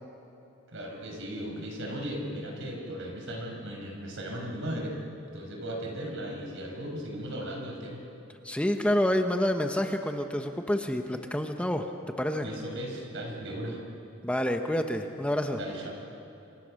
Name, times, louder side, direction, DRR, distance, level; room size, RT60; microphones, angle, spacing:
voice 1, 0.7-8.0 12.4-13.8 15.5-16.0, equal, 65° right, 1 dB, 5.7 m, -37 dB
voice 2, 8.4-11.9 12.2-12.5 14.2-15.6, left 1 dB, 5° left, 5 dB, 1.0 m, -28 dB
27.5 x 26.5 x 6.5 m, 2.9 s
head